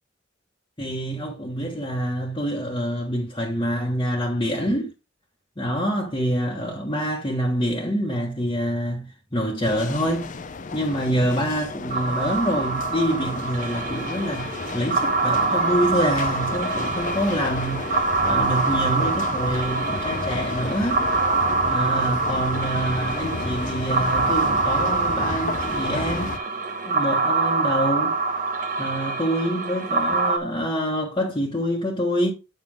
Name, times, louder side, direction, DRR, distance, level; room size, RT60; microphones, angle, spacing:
voice 1, 0.8-4.9 5.6-10.3 10.7-21.0 21.7-26.4 26.8-28.2 28.8-32.3, equal, 25° left, 1.4 m, -26 dB
sound 1, 9.6-26.4, left 3 dB, 40° left, 0.6 m, -32 dB
sound 2, 11.9-30.4, right 4 dB, 45° right, 1.1 m, -25 dB
8.7 x 5.4 x 3.6 m
head